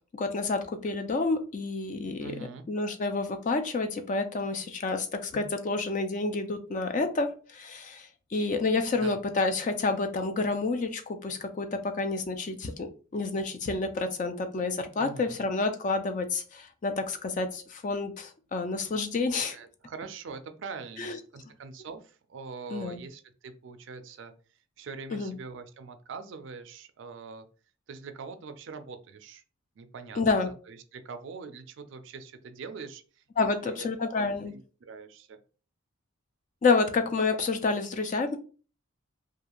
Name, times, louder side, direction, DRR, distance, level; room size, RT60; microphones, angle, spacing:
voice 1, 0.1-2.4 2.7-19.6 21.0-21.2 22.7-23.0 25.1-25.4 30.2-30.5 33.4-34.5 36.6-38.4, left 3 dB, 35° left, 8 dB, 0.3 m, -29 dB
voice 2, 2.2-2.7 8.9-9.2 15.0-15.4 19.5-24.3 24.8-27.5 27.9-29.4 29.8-35.4, right 5 dB, 60° right, 8 dB, 0.4 m, -43 dB
2.4 x 2.3 x 2.9 m, 0.37 s
head